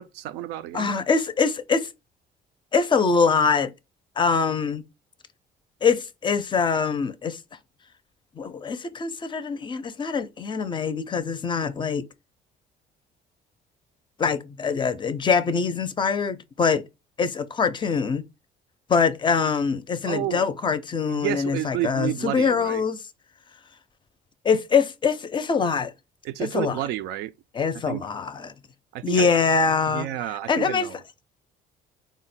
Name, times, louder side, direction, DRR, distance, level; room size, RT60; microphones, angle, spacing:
voice 1, 0.0-0.9 20.1-20.5 21.1-22.9 26.2-27.3 27.9-28.0 28.9-29.3 29.9-31.0, right 13 dB, 90° right, 0.4 m, -30 dB
voice 2, 0.7-1.9 2.7-3.7 4.2-4.8 5.8-7.4 8.4-12.0 14.2-16.8 17.2-18.2 18.9-23.0 24.4-25.9 26.4-26.8 27.5-28.5 29.0-30.1 30.5-30.9, left 5 dB, 30° left, 0.4 m, -23 dB
3.7 x 2.1 x 4.0 m
cardioid pair, 110°, 17 cm